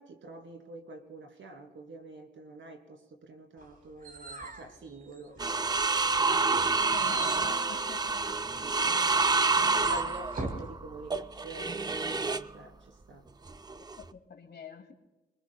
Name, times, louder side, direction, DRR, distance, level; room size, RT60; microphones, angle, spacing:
voice 1, 0.0-5.4 8.6-13.2, right 2 dB, 80° right, 4 dB, 2.9 m, -47 dB
sound 1, 3.6-5.6 6.0-10.7, right 2 dB, 50° right, 3.9 m, -41 dB
sound 2, 5.4-12.5 13.5-14.1, right 4 dB, 20° right, 0.5 m, -28 dB
voice 2, 6.9-8.2 8.8-9.2 13.1-13.2 13.7-14.9, left 6 dB, 60° left, 6 dB, 2.3 m, -46 dB
26.0 x 22.5 x 2.3 m, 1.1 s
cardioid pair, 90°, 19 cm